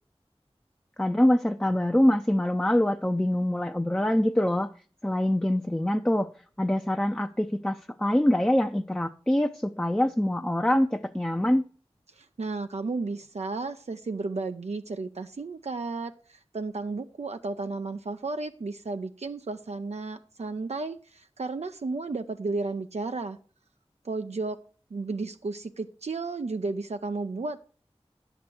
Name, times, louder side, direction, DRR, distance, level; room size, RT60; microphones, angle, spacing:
voice 1, 1.0-4.7 5.0-6.3 6.6-11.7, left 1 dB, 10° left, 0.5 m, -24 dB
voice 2, 12.2-23.4 24.0-24.6 24.9-27.6, right 3 dB, 85° right, 0.6 m, -33 dB
10.5 x 8.0 x 4.5 m
wide cardioid pair, 55°, 11 cm